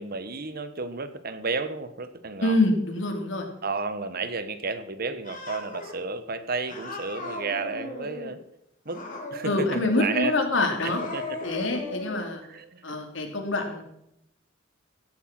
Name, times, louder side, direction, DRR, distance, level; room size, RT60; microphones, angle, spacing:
voice 1, 0.0-2.6 3.6-8.4 8.8-9.0 9.3-10.3 10.8-11.4 12.5-13.0, right 4 dB, 50° right, 11 dB, 1.2 m, -32 dB
voice 2, 2.4-3.5 9.4-11.0 11.4-12.4 12.8-13.8, left 2 dB, 70° left, 4 dB, 2.8 m, -25 dB
Cat, 5.2-5.9 6.7-8.3 8.9-10.1 10.7-12.3, left 2 dB, 45° left, 3.3 m, -37 dB
16.5 x 8.7 x 6.0 m, 0.79 s
head